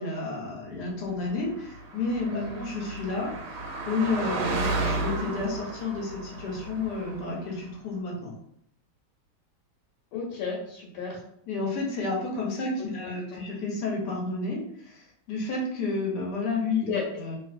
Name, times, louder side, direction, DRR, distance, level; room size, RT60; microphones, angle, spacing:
voice 1, 0.0-3.3 3.8-8.3 11.5-17.4, left 3 dB, 60° left, -2 dB, 1.3 m, -31 dB
Car passing by, 1.5-7.5, right 2 dB, 85° right, 1.6 m, -33 dB
voice 2, 2.3-2.6 10.1-11.2 13.0-13.5 16.9-17.1, left 5 dB, 85° left, -2 dB, 1.7 m, -33 dB
3.2 x 3.2 x 2.5 m, 0.69 s
omnidirectional pair, 2.3 m